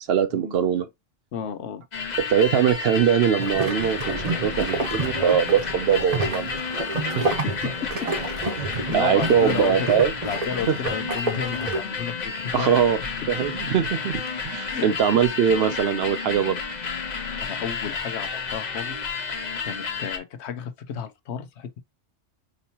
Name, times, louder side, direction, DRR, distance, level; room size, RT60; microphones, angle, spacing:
voice 1, 0.1-0.9 2.3-6.6 7.0-7.4 8.6-10.1 10.7-10.8 12.5-13.0 13.3-16.6, right 8 dB, 65° right, 0.7 m, -22 dB
voice 2, 1.3-1.8 6.6-7.0 7.4-7.5 8.8-9.9 10.2-12.7 14.7-14.9 17.4-19.0 19.6-21.8, left 7 dB, 70° left, 0.9 m, -32 dB
sound 1, 1.9-20.2, left 5 dB, 40° left, 0.9 m, -31 dB
sound 2, 3.4-11.8, right 3 dB, 35° right, 0.9 m, -29 dB
5.2 x 2.9 x 2.7 m
omnidirectional pair, 1.2 m